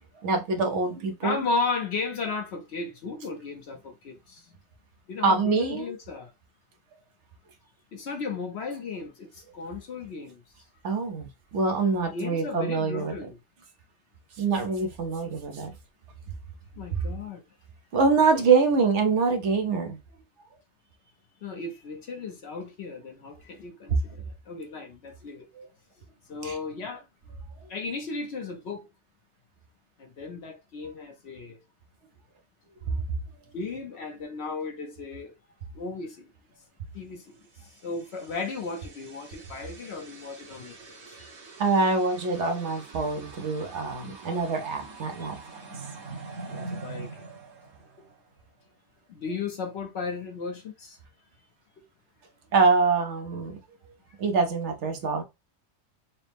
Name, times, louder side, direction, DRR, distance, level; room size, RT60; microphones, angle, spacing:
voice 1, 0.2-1.4 5.2-5.9 10.8-13.2 14.4-15.8 17.9-20.0 25.5-25.7 26.4-26.6 32.9-33.0 41.6-45.4 52.5-53.6 54.2-55.2, right 4 dB, 90° right, 1.1 m, -25 dB
voice 2, 1.2-4.4 5.1-6.3 7.9-10.4 12.1-13.4 16.8-17.4 21.4-23.9 24.5-25.5 26.3-27.0 27.7-28.9 30.0-31.6 33.5-35.3 35.7-36.3 36.9-37.4 37.8-41.0 46.5-47.2 49.1-51.0, left 4 dB, 70° left, 1.0 m, -35 dB
sound 1, 37.7-48.4, right 3 dB, 75° right, 1.3 m, -44 dB
5.6 x 2.0 x 3.3 m
omnidirectional pair, 1.2 m